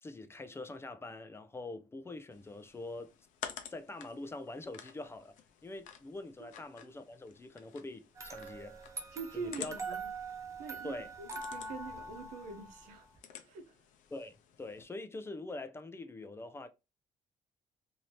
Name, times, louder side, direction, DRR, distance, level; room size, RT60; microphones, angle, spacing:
voice 1, 0.0-3.2 3.7-5.3 5.6-8.8 9.3-9.7 10.8-11.1 14.1-16.7, left 2 dB, 20° left, 0.5 m, -44 dB
sound 1, 2.3-14.8, left 9 dB, 80° left, 0.6 m, -51 dB
sound 2, 8.2-13.2, right 3 dB, 25° right, 0.9 m, -43 dB
voice 2, 9.1-10.1 10.6-13.1 13.4-13.8, right 5 dB, 90° right, 0.8 m, -44 dB
2.8 x 2.8 x 3.1 m
cardioid pair, 105°, 13 cm